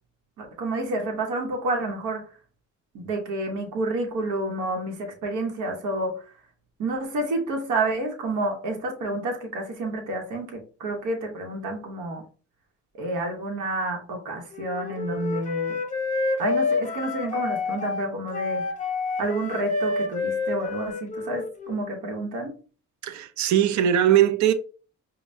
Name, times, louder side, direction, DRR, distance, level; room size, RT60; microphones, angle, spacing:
voice 1, 0.4-2.2 2.9-6.1 6.8-12.2 13.0-15.8 16.4-18.6 19.2-22.5, right 2 dB, 90° right, 1.0 m, -29 dB
Wind instrument woodwind instrument, 14.5-21.9, left 3 dB, 25° left, 0.6 m, -29 dB
voice 2, 23.0-24.5, right 10 dB, 70° right, 0.6 m, -20 dB
5.2 x 2.2 x 2.6 m
cardioid pair, 90°, 30 cm